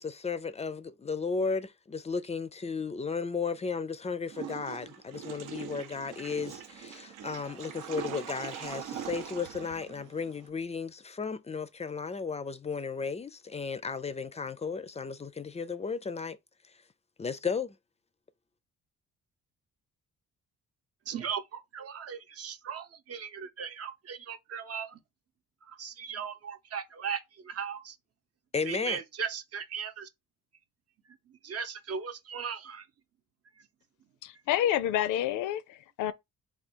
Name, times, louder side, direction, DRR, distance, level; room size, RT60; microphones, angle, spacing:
voice 1, 0.0-16.4 17.2-17.8 28.5-29.0, left 5 dB, 20° left, 0.4 m, -34 dB
Water / Toilet flush, 4.3-10.5, right 9 dB, 85° right, 0.7 m, -42 dB
voice 2, 21.1-25.0 25.6-28.0 28.6-30.1 31.3-32.9 33.6-33.7, right 7 dB, 50° right, 0.7 m, -38 dB
voice 3, 34.2-36.1, left 11 dB, 85° left, 0.5 m, -29 dB
3.6 x 2.4 x 4.4 m
cardioid pair, 90°, 30 cm